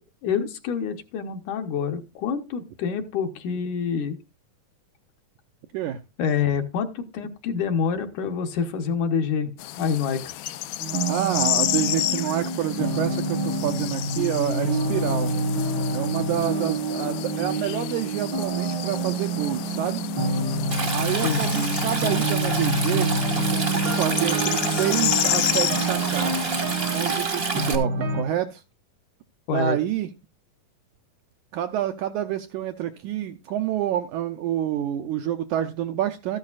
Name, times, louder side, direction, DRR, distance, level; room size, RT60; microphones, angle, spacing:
voice 1, 0.2-4.2 6.2-9.5 9.8-10.2 21.2-21.5 29.5-29.8, left 6 dB, 70° left, 6 dB, 2.3 m, -26 dB
sound 1, 9.6-27.3, left 14 dB, 90° left, 2.5 m, -31 dB
sound 2, 10.8-28.2, right 2 dB, 60° right, 1.2 m, -27 dB
voice 2, 11.1-15.3 15.9-20.0 20.9-26.4 26.9-28.6 29.5-30.1 31.5-36.4, right 11 dB, 80° right, 8 dB, 1.8 m, -28 dB
Stream, 20.7-27.8, right 3 dB, 40° right, 0.8 m, -29 dB
13.5 x 10.5 x 2.4 m, 0.27 s
omnidirectional pair, 4.0 m